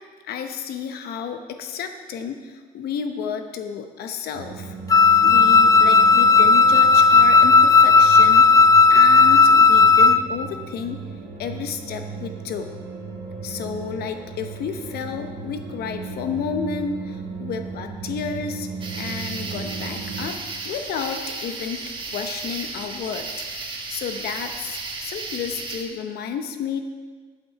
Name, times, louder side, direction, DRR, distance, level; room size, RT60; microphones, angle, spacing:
voice 1, 0.2-4.7 5.2-11.0 11.4-12.7 13.4-18.7 19.0-20.4 20.6-23.3 23.6-26.8, left 7 dB, 70° left, 7 dB, 0.8 m, -31 dB
sound 1, 4.3-20.3, right 5 dB, 75° right, 2.5 m, -36 dB
Wind instrument woodwind instrument, 4.9-10.2, left 4 dB, 20° left, 0.4 m, -13 dB
sound 2, 18.8-25.8, right 3 dB, 30° right, 1.6 m, -34 dB
10.0 x 8.7 x 4.7 m, 1.5 s
cardioid pair, 110°, 17 cm